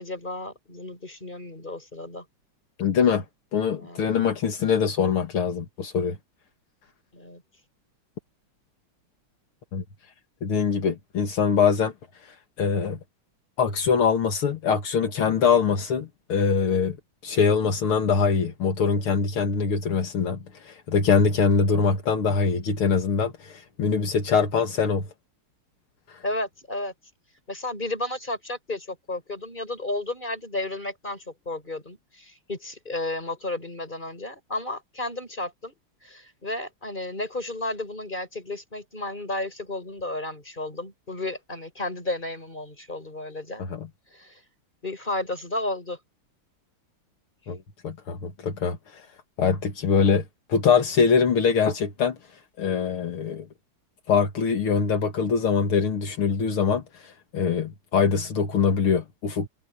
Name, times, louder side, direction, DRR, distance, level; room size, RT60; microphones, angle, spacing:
voice 1, 0.0-2.2 3.7-4.1 7.1-7.4 26.2-26.9 27.5-35.7 36.0-43.6 44.1-44.4 44.8-46.0, left 2 dB, 20° left, 6.5 m, -33 dB
voice 2, 2.8-3.2 3.5-6.2 9.7-9.8 10.4-11.9 12.6-13.0 13.6-17.0 17.2-20.4 20.7-25.1 43.7-43.9 47.5-47.6 47.8-48.8 49.4-50.2 50.5-52.2 52.6-53.4 54.1-56.8 57.3-59.5, left 6 dB, 75° left, 2.8 m, -23 dB
omnidirectional pair, 2.4 m